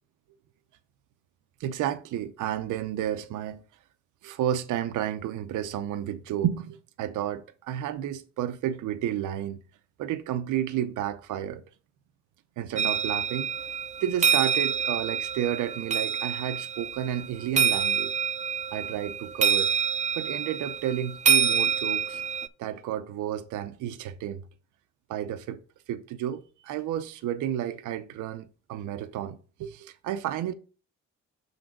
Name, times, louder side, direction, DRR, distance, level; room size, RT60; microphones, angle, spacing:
voice 1, 1.6-3.6 4.2-9.6 10.0-11.6 12.6-13.5 14.0-18.1 18.7-19.7 20.2-22.2 22.6-24.4 25.1-25.6 25.9-30.5, right 11 dB, 80° right, 0.7 m, -31 dB
sound 1, 12.8-22.5, right 6 dB, 25° right, 0.4 m, -27 dB
5.9 x 3.9 x 5.9 m
cardioid pair, 90°, 30 cm